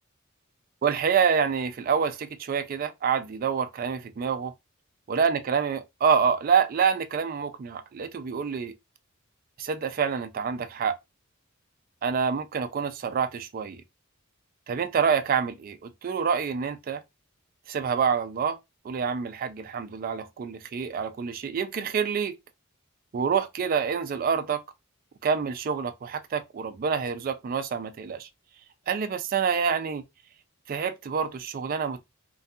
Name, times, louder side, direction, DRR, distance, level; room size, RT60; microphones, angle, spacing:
voice 1, 0.8-4.5 5.1-8.7 9.6-10.9 12.0-13.8 14.7-17.0 17.7-18.6 18.8-22.3 23.1-24.6 25.2-28.3 28.9-30.0 30.7-32.0, right 6 dB, 45° right, 0.3 m, -27 dB
2.3 x 2.2 x 2.6 m
head